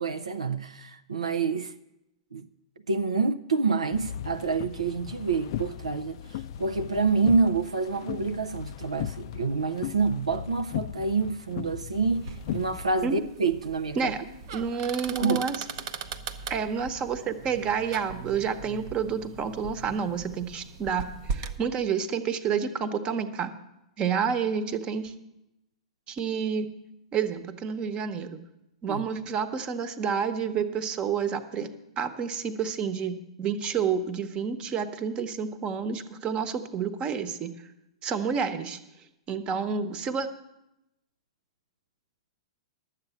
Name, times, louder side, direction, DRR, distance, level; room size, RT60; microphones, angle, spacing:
voice 1, 0.0-1.7 2.3-2.5 2.9-14.1 15.2-15.4 28.9-29.1, right 4 dB, 85° right, 0.5 m, -27 dB
sound 1, 3.9-12.9, left 11 dB, 55° left, 0.3 m, -37 dB
sound 2, 12.1-21.6, right 5 dB, 55° right, 0.8 m, -39 dB
voice 2, 14.5-15.5 16.5-23.5 24.0-25.1 26.1-26.7 27.1-28.4 28.8-31.7 32.0-37.5 38.0-38.8 39.3-40.3, right 6 dB, 30° right, 1.0 m, -29 dB
11.5 x 8.2 x 7.0 m
hypercardioid pair, 105°, 3 cm